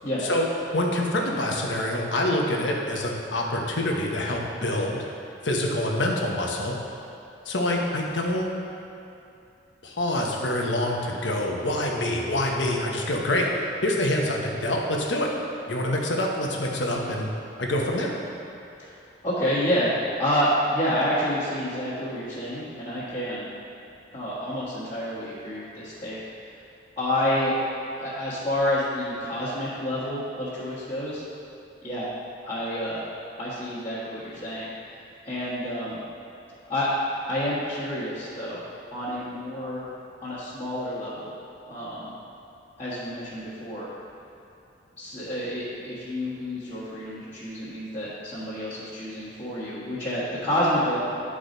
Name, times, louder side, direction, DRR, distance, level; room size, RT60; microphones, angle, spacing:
voice 1, 0.2-5.0 5.4-6.7 7.4-8.5 9.8-15.3 15.7-17.3 17.6-18.1, left 1 dB, 85° left, -1 dB, 1.0 m, -26 dB
voice 2, 19.2-19.9 20.2-23.5 24.1-26.2 27.0-27.5 28.0-31.2 31.8-32.1 32.4-33.0 33.4-34.7 35.2-36.0 36.7-36.9 37.2-38.6 38.9-39.8 40.2-41.3 41.7-42.0 42.8-43.9 45.0-51.0, equal, 30° left, -12 dB, 1.5 m, -28 dB
10.0 x 4.9 x 4.0 m, 2.6 s
head